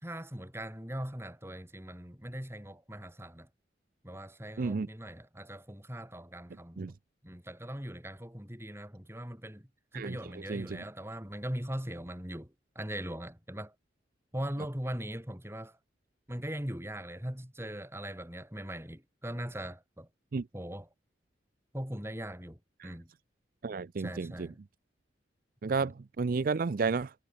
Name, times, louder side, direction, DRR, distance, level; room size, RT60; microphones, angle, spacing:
voice 1, 0.0-3.5 4.0-6.9 7.2-13.7 14.3-15.8 16.3-20.1 20.5-20.9 21.7-23.1 24.0-24.6 25.8-25.9, equal, 15° right, 4.5 m, -40 dB
voice 2, 10.5-10.8 20.3-20.4 22.8-23.0 23.6-24.5 25.6-27.1, right 4 dB, 50° right, 0.4 m, -32 dB
head